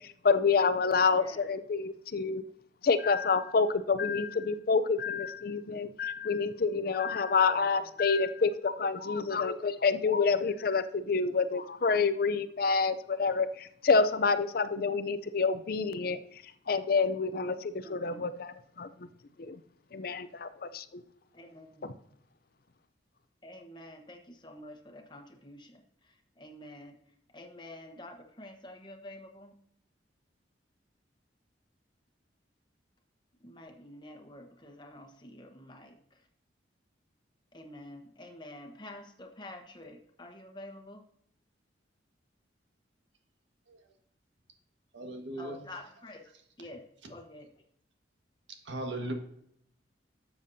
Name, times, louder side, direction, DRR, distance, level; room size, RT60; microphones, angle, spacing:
voice 1, 0.2-2.4 2.8-16.2 16.7-18.9 19.4-19.6 19.9-21.0 21.8-21.9, left 4 dB, 50° left, 12 dB, 0.5 m, -28 dB
voice 2, 1.1-1.5 7.7-7.9 17.8-18.3 21.3-21.9 23.4-25.8 26.4-26.9 27.3-29.5 33.4-36.0 37.5-41.0 45.4-46.3 46.6-47.5, left 1 dB, 25° left, 3 dB, 1.1 m, -48 dB
voice 3, 44.9-45.6 48.6-49.1, right 1 dB, 85° right, 3 dB, 1.6 m, -37 dB
12.5 x 7.1 x 2.7 m, 0.70 s
head